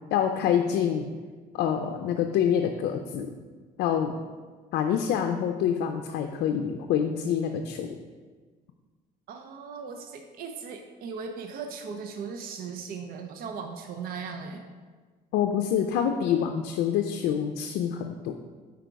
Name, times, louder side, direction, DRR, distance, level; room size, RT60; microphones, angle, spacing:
voice 1, 0.1-1.1 1.5-3.3 3.8-4.1 4.7-8.0 15.3-18.3, left 8 dB, 80° left, 5 dB, 0.4 m, -26 dB
voice 2, 9.3-14.6, right 5 dB, 60° right, 4 dB, 0.6 m, -38 dB
5.1 x 4.7 x 4.6 m, 1.4 s
cardioid pair, 110°, 17 cm